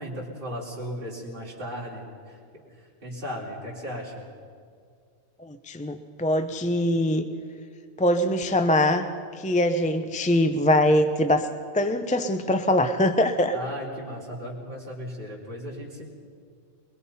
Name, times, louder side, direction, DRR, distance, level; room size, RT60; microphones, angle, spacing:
voice 1, 0.0-2.4 2.8-4.2 13.5-16.1, equal, 40° right, -6 dB, 3.7 m, -36 dB
voice 2, 5.4-7.2 8.0-9.1 9.3-11.5 11.7-13.5, left 1 dB, 10° left, 8 dB, 0.6 m, -23 dB
23.0 x 22.0 x 5.6 m, 2.2 s
omnidirectional pair, 1.4 m